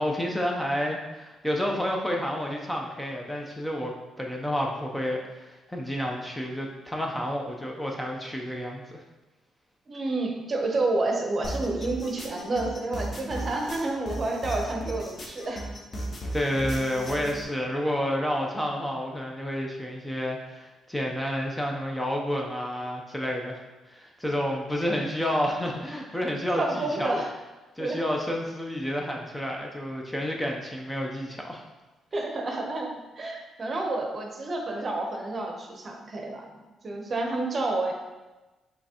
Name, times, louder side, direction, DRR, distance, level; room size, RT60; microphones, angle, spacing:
voice 1, 0.0-9.0 16.3-27.2 27.8-31.6, equal, 5° left, 0 dB, 0.6 m, -30 dB
voice 2, 9.9-15.6 26.6-27.3 27.8-28.0 32.1-37.9, right 2 dB, 40° right, 1 dB, 0.8 m, -29 dB
sound 1, 11.4-17.4, right 1 dB, 40° left, 1.0 m, -35 dB
5.7 x 3.2 x 2.9 m, 1.1 s
cardioid pair, 90°, 0 cm